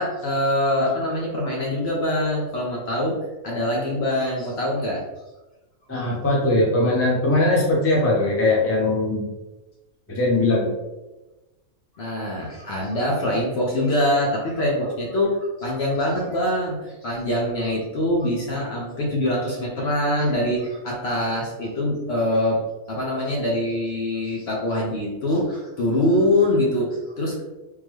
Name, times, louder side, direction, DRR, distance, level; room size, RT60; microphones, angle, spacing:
voice 1, 0.0-3.2 3.4-5.0 12.0-22.6 22.9-27.4, left 1 dB, 55° left, -3 dB, 0.8 m, -24 dB
voice 2, 5.9-9.3 10.1-10.7, left 2 dB, 15° left, -5 dB, 0.5 m, -20 dB
3.6 x 2.1 x 3.1 m, 1.1 s
omnidirectional pair, 1.5 m